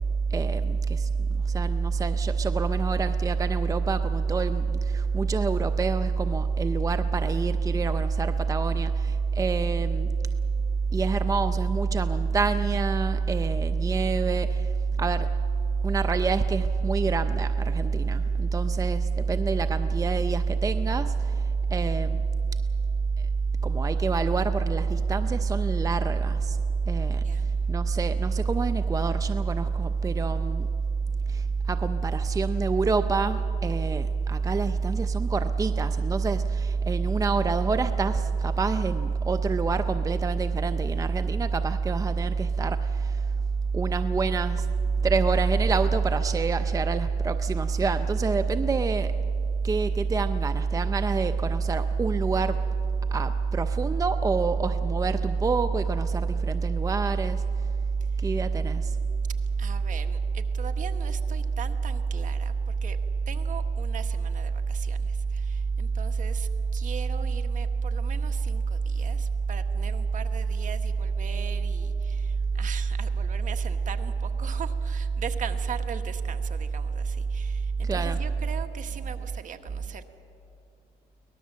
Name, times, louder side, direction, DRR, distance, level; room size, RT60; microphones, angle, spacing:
voice 1, 0.3-1.1 1.5-10.1 10.9-14.7 15.0-15.3 15.8-21.4 21.7-22.2 23.6-26.6 26.9-27.2 27.7-30.7 31.3-43.2 43.7-44.7 45.0-49.1 49.6-52.6 53.1-57.4 58.2-59.0 77.8-78.2, right 4 dB, 20° right, 10 dB, 0.6 m, -25 dB
voice 2, 27.2-27.6 58.1-58.4 59.6-63.0 63.3-80.1, right 8 dB, 50° right, 7 dB, 1.5 m, -41 dB
23.5 x 19.0 x 7.5 m, 2.9 s
cardioid pair, 110°, 17 cm